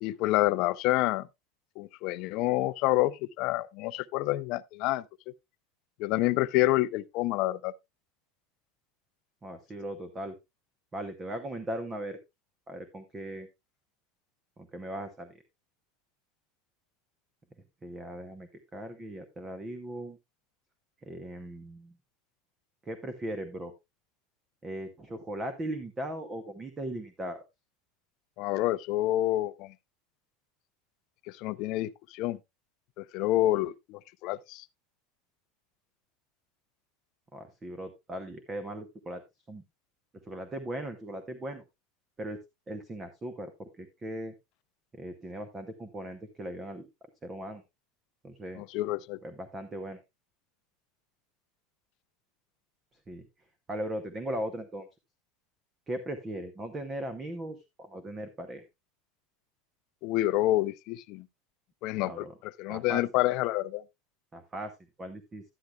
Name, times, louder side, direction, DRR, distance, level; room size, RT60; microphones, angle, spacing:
voice 1, 0.0-1.3 1.8-5.0 6.0-7.7 28.4-29.7 31.3-32.4 33.0-34.6 48.6-49.2 60.0-61.3 61.8-63.8, left 16 dB, 45° left, 0.5 m, -28 dB
voice 2, 9.4-10.4 10.9-12.2 12.7-13.5 14.6-15.4 17.8-20.2 21.0-21.9 22.8-23.7 24.6-27.4 37.3-39.2 39.5-39.6 40.2-41.6 42.2-42.4 42.7-44.3 44.9-46.9 47.2-47.6 48.2-48.6 49.2-50.0 53.1-53.2 53.7-54.9 55.9-58.6 62.0-62.3 62.7-63.0 64.3-65.4, right 1 dB, 15° right, 0.8 m, -38 dB
11.5 x 9.4 x 2.3 m
supercardioid pair, 170°, 0 cm